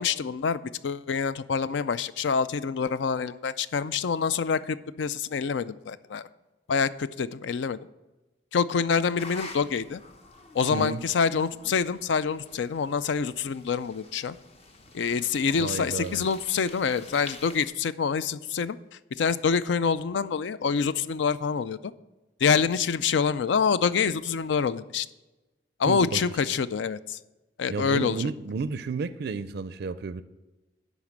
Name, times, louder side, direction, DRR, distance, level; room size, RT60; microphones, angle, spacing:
voice 1, 0.0-6.2 6.7-7.8 8.5-10.0 10.5-14.4 14.9-18.8 19.2-21.9 22.4-25.1 25.8-27.2 27.6-28.3, left 6 dB, 65° left, 16 dB, 0.4 m, -26 dB
sound 1, 9.2-17.7, left 3 dB, 35° left, 0.8 m, -48 dB
voice 2, 10.7-11.0 15.6-16.2 25.9-26.2 27.7-30.2, right 4 dB, 55° right, 14 dB, 0.4 m, -32 dB
11.0 x 4.1 x 7.3 m, 1.1 s
head